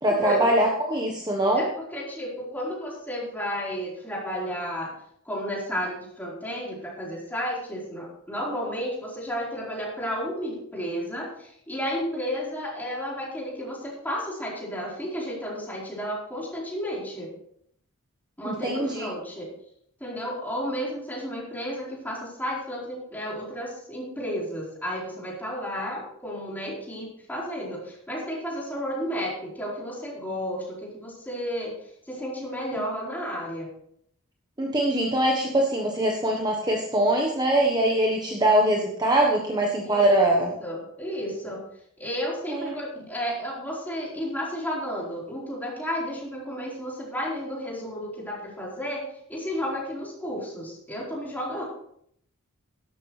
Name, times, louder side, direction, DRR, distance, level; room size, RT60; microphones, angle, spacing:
voice 1, 0.0-1.7 18.4-19.1 34.6-40.5 42.5-42.7, right 1 dB, 20° right, 0 dB, 1.2 m, -23 dB
voice 2, 1.6-4.9 5.2-17.3 18.4-19.5 20.0-31.7 32.1-33.7 39.9-41.6 42.0-51.6, equal, 10° left, -5 dB, 4.3 m, -32 dB
12.5 x 12.0 x 3.3 m, 0.69 s
head